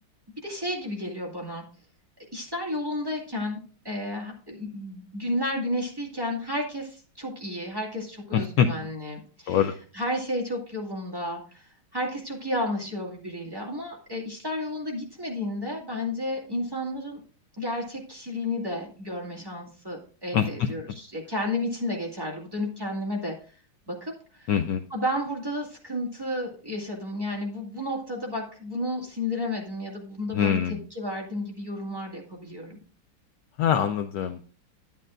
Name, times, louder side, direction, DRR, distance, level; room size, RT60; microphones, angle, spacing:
voice 1, 0.4-1.6 2.3-3.6 3.8-17.2 17.6-23.3 23.9-24.5 24.9-32.8, left 1 dB, 10° right, -3 dB, 1.8 m, -32 dB
voice 2, 8.3-8.7 9.5-9.7 20.3-20.7 24.5-24.8 30.3-30.8 33.6-34.5, left 8 dB, 75° left, 8 dB, 1.1 m, -24 dB
11.0 x 8.8 x 2.5 m, 0.39 s
omnidirectional pair, 2.2 m